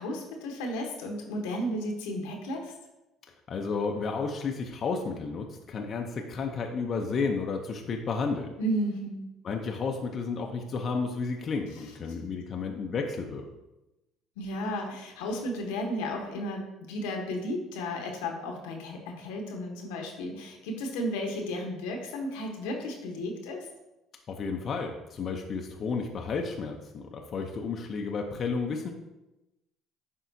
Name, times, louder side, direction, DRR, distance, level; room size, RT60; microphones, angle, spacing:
voice 1, 0.0-2.7 8.6-9.2 14.4-16.6 16.9-23.6, equal, 80° left, 2 dB, 1.1 m, -33 dB
voice 2, 3.5-8.5 9.4-13.4 24.3-28.9, left 4 dB, 50° left, 2 dB, 0.7 m, -32 dB
10.5 x 3.6 x 2.7 m, 0.97 s
hypercardioid pair, 65°, 0 cm